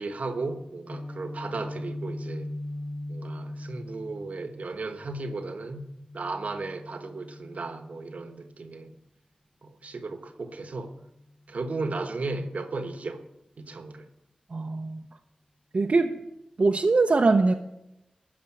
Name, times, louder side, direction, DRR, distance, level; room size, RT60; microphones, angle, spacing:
voice 1, 0.0-2.5 3.1-5.8 6.1-8.9 9.6-10.9 11.5-13.2 13.6-14.1, right 3 dB, 75° right, 1.2 m, -35 dB
Guitar, 0.9-8.7, left 1 dB, 40° left, 1.5 m, -40 dB
voice 2, 14.5-15.0 15.7-16.1 16.6-17.5, right 3 dB, 60° right, 0.7 m, -22 dB
13.0 x 5.2 x 8.9 m
cardioid pair, 50°, 2 cm